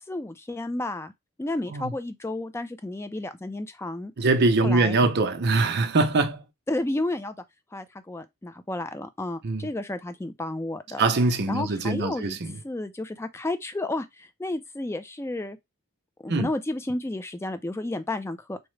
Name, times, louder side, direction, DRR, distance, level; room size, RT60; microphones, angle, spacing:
voice 1, 0.1-1.1 1.4-4.1 4.6-5.0 6.7-7.4 7.7-11.1 11.5-12.4 12.6-15.6 16.2-18.6, left 2 dB, 10° left, 0.3 m, -31 dB
voice 2, 4.2-6.4 9.4-9.7 11.0-12.5 16.3-16.5, right 3 dB, 45° right, 0.6 m, -23 dB
4.7 x 2.1 x 3.1 m
head